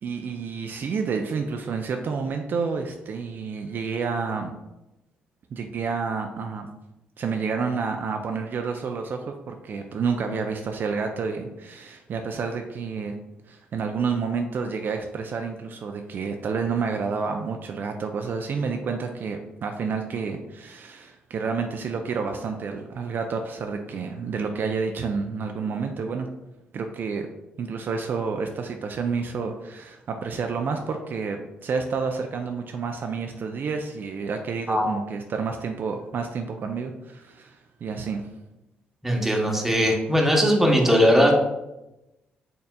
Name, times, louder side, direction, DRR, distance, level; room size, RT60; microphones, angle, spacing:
voice 1, 0.0-4.5 5.5-6.7 7.2-13.1 13.5-26.3 26.7-27.3 27.6-38.3, right 5 dB, 55° right, 4 dB, 0.4 m, -29 dB
voice 2, 39.0-41.5, equal, 5° right, 0 dB, 0.9 m, -19 dB
4.2 x 3.7 x 2.2 m, 0.97 s
supercardioid pair, 60°, 4 cm